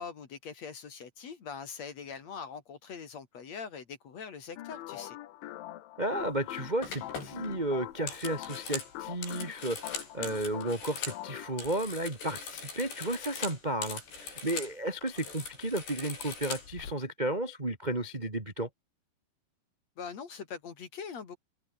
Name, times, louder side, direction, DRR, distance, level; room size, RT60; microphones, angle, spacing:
voice 1, 0.0-5.2 20.0-21.4, left 6 dB, 40° left, 3.0 m, -42 dB
sound 1, 4.6-11.6, left 14 dB, 75° left, 3.7 m, -43 dB
voice 2, 6.0-18.7, right 1 dB, 15° right, 1.5 m, -33 dB
sound 2, 6.2-6.4 6.8-11.2 11.5-14.7 15.0-16.9, left 4 dB, 60° left, 10.0 m, -41 dB
omnidirectional pair, 5.5 m